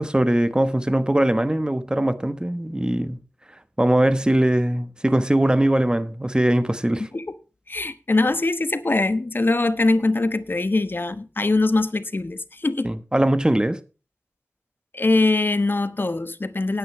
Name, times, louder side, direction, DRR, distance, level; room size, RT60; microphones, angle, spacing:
voice 1, 0.0-3.2 3.8-7.1 12.8-13.8, right 1 dB, 15° right, 1.1 m, -21 dB
voice 2, 7.7-12.9 14.9-16.8, left 2 dB, 40° left, 1.2 m, -22 dB
18.0 x 9.7 x 3.2 m
wide cardioid pair, 75°, 5 cm